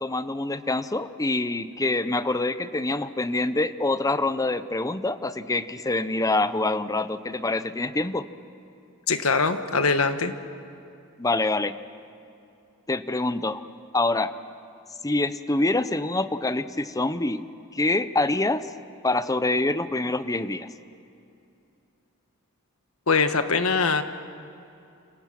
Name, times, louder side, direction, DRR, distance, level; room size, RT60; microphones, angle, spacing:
voice 1, 0.0-8.2 11.2-11.7 12.9-13.6 13.9-14.3 15.0-17.4 17.7-18.7 19.0-20.7, left 2 dB, 15° left, 13 dB, 0.8 m, -25 dB
voice 2, 9.1-10.3 23.1-24.0, left 4 dB, 75° left, 9 dB, 1.4 m, -22 dB
29.5 x 28.0 x 6.0 m, 2.7 s
head